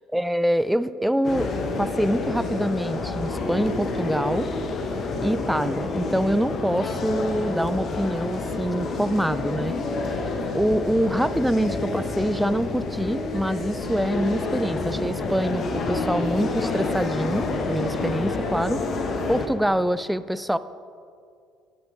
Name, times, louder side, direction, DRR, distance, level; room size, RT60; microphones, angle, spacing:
voice 1, 0.1-1.5 1.8-4.5 5.2-9.7 10.5-18.8 19.3-20.6, equal, 5° right, 14 dB, 0.3 m, -25 dB
sound 1, 1.2-19.5, left 3 dB, 45° left, 1.0 m, -28 dB
8.7 x 7.8 x 5.3 m, 2.3 s
figure-of-eight pair, 55°, 0 cm